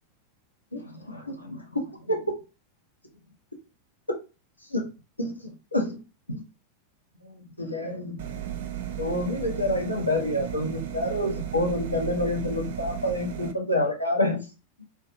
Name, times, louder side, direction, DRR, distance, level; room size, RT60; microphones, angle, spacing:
voice 1, 0.7-2.3 4.7-4.9 5.2-5.3 5.7-6.0 6.3-6.4 7.2-8.3 9.0-14.5, left 1 dB, 85° left, 0.6 m, -28 dB
sound 1, 8.2-13.5, right 10 dB, 55° right, 0.3 m, -35 dB
2.4 x 2.2 x 2.5 m
figure-of-eight pair, 90°, 0 cm